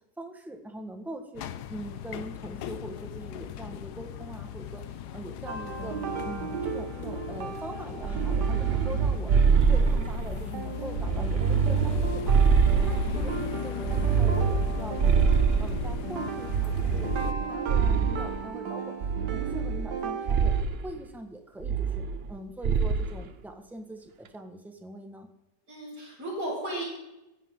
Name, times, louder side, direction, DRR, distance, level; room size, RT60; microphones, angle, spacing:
voice 1, 0.2-1.4 1.7-6.0 6.2-12.4 12.7-15.2 15.6-20.5 20.8-25.3, right 1 dB, ahead, 4 dB, 1.5 m, -42 dB
sound 1, 1.4-17.3, left 10 dB, 80° left, 1.3 m, -38 dB
sound 2, 5.5-20.6, right 6 dB, 90° right, 1.8 m, -36 dB
sound 3, 8.0-10.5 10.9-13.4 13.8-16.0 16.5-18.4 19.0-20.0 20.3-20.8 21.6-22.4 22.6-23.1, right 6 dB, 50° right, 0.8 m, -24 dB
voice 2, 8.6-9.1 25.7-26.8, right 1 dB, 70° right, -10 dB, 7.4 m, -36 dB
23.5 x 11.0 x 4.0 m, 0.94 s
omnidirectional pair, 1.7 m